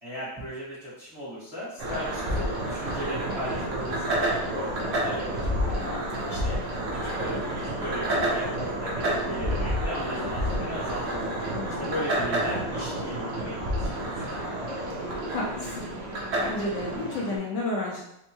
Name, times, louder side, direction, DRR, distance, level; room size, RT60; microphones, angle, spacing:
voice 1, 0.0-5.8 6.3-6.6 7.0-11.3 11.8-14.6, equal, 20° right, -9 dB, 1.1 m, -37 dB
sound 1, 1.8-17.4, right 1 dB, 55° right, 1.0 m, -29 dB
voice 2, 5.8-6.4 11.5-11.9 15.3-15.9 16.4-18.0, left 2 dB, 70° left, -2 dB, 1.2 m, -32 dB
4.4 x 2.2 x 2.9 m, 0.82 s
omnidirectional pair, 2.1 m